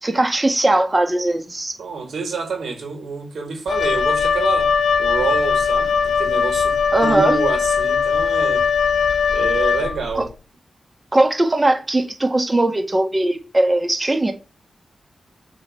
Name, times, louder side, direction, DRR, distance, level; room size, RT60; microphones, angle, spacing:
voice 1, 0.0-1.8 6.9-7.4 10.2-10.3 11.1-14.3, right 2 dB, 20° right, 1.8 m, -19 dB
voice 2, 1.8-4.7 5.0-8.7 9.3-10.3, right 5 dB, 85° right, 4.7 m, -27 dB
Wind instrument woodwind instrument, 3.7-10.2, left 6 dB, 65° left, 0.9 m, -19 dB
7.8 x 5.3 x 6.9 m
wide cardioid pair, 160°, 0 cm